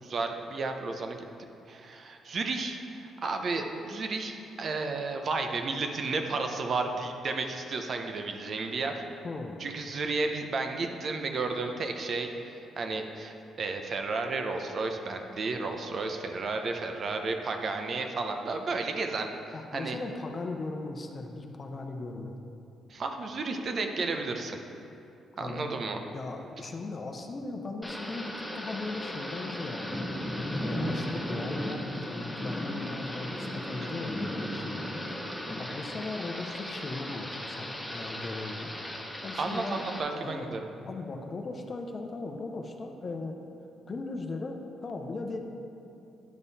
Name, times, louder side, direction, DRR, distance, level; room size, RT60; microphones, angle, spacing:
voice 1, 0.0-1.2 1.7-9.0 9.6-19.3 19.7-20.0 22.9-24.6 25.4-26.0 39.4-40.7, right 3 dB, 50° right, 4 dB, 0.8 m, -32 dB
voice 2, 9.2-9.6 19.5-22.3 25.4-25.7 26.1-30.1 30.6-35.0 35.5-38.7 39.2-39.9 40.1-40.5 40.9-43.4 43.9-45.4, left 3 dB, 40° left, 4 dB, 0.8 m, -38 dB
Thunder / Rain, 27.8-40.0, left 1 dB, 5° left, 1.0 m, -36 dB
10.5 x 5.5 x 4.1 m, 2.7 s
cardioid pair, 90°, 0 cm